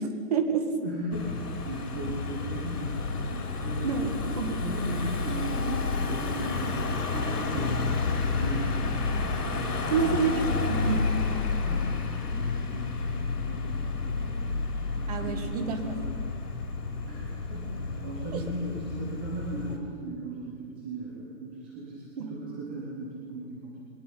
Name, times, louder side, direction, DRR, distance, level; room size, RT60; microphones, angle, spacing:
voice 1, 0.0-0.7 3.8-4.6 9.9-11.2 15.1-16.0 18.3-18.4 22.2-22.4, right 6 dB, 25° right, 6 dB, 1.9 m, -29 dB
voice 2, 0.8-10.5 11.6-12.0 12.3-16.0 17.0-23.8, right 2 dB, 5° right, -4 dB, 0.8 m, -38 dB
Car passing by / Engine, 1.1-19.8, left 4 dB, 70° left, 5.4 m, -30 dB
21.5 x 19.0 x 9.5 m, 2.2 s
hypercardioid pair, 170°, 46 cm